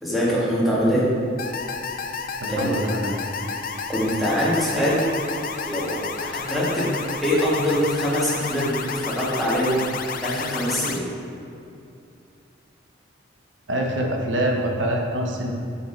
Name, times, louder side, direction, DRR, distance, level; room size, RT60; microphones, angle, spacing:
voice 1, 0.0-1.1 2.5-2.8 3.9-5.1 5.7-9.8 10.2-11.1, equal, ahead, -7 dB, 1.9 m, -23 dB
sound 1, 1.4-11.0, left 5 dB, 45° left, 0.5 m, -31 dB
voice 2, 2.4-3.2 13.7-15.5, right 1 dB, 75° right, 1 dB, 1.2 m, -25 dB
8.2 x 7.3 x 4.6 m, 2.6 s
head